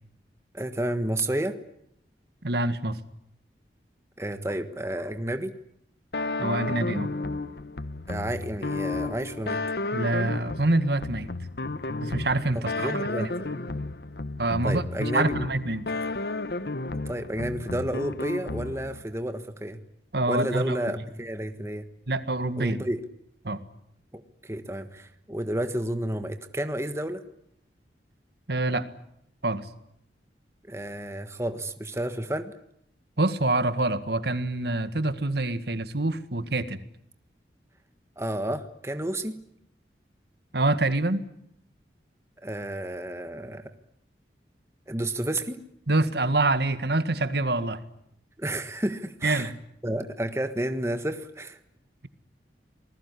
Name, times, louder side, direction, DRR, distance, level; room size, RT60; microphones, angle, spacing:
voice 1, 0.5-1.6 4.2-5.5 8.1-9.6 12.7-13.6 14.6-15.3 17.0-19.8 20.3-21.8 22.6-23.0 24.1-27.2 30.7-32.5 38.2-39.4 42.4-43.7 44.9-45.6 48.4-49.5 49.8-51.6, right 1 dB, 15° right, 8 dB, 1.5 m, -31 dB
voice 2, 2.4-3.0 6.4-7.1 9.9-11.3 12.0-13.3 14.4-14.8 15.1-15.9 20.1-20.9 22.1-22.8 23.5-23.6 28.5-28.9 29.4-29.7 33.2-36.8 40.5-41.2 45.9-47.8 49.2-49.6, right 2 dB, 70° right, 11 dB, 1.8 m, -26 dB
sound 1, 6.1-19.0, left 3 dB, 65° left, 1.0 m, -32 dB
27.5 x 20.0 x 9.8 m, 0.74 s
head